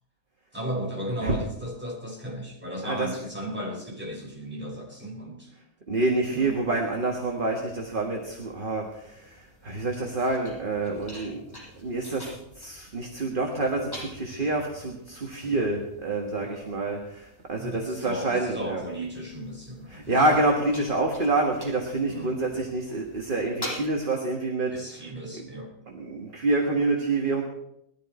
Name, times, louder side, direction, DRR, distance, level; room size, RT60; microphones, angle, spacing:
voice 1, 0.5-5.5 6.3-6.6 15.4-15.7 16.4-16.9 17.6-20.3 22.1-22.4 24.7-25.7, equal, 5° right, -2 dB, 4.2 m, -35 dB
voice 2, 5.9-11.4 11.8-12.3 12.6-18.8 19.9-24.8 25.9-27.4, right 2 dB, 30° right, 1 dB, 1.7 m, -27 dB
sound 1, 6.3-23.9, equal, 10° left, 7.2 m, -46 dB
20.0 x 13.5 x 4.4 m, 0.78 s
omnidirectional pair, 1.8 m